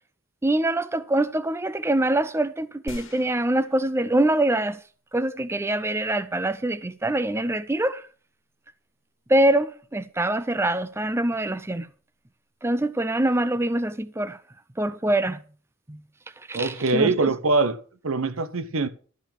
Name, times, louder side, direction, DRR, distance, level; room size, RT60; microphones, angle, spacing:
voice 1, 0.4-4.8 5.1-8.0 9.3-11.9 12.6-14.4 14.8-15.4 15.9-16.0 16.5-17.1, right 1 dB, 10° right, 0.4 m, -24 dB
sound 1, 2.9-4.6 5.1-5.2, left 1 dB, 65° left, 1.7 m, -44 dB
voice 2, 16.5-18.9, right 3 dB, 75° right, 0.9 m, -23 dB
12.5 x 6.1 x 6.6 m
head